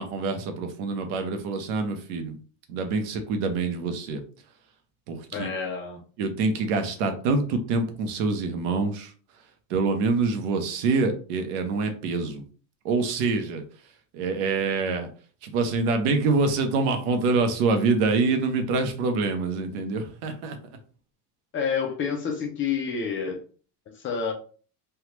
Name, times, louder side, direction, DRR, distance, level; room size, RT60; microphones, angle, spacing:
voice 1, 0.0-2.4 2.7-4.2 5.1-5.5 6.2-9.1 9.7-12.4 12.8-13.6 14.1-15.1 15.4-20.6, right 4 dB, 65° right, 6 dB, 0.9 m, -25 dB
voice 2, 5.3-6.0 21.5-23.4 23.9-24.3, left 6 dB, 25° left, 3 dB, 0.5 m, -29 dB
3.4 x 2.3 x 3.0 m, 0.40 s
supercardioid pair, 140°, 47 cm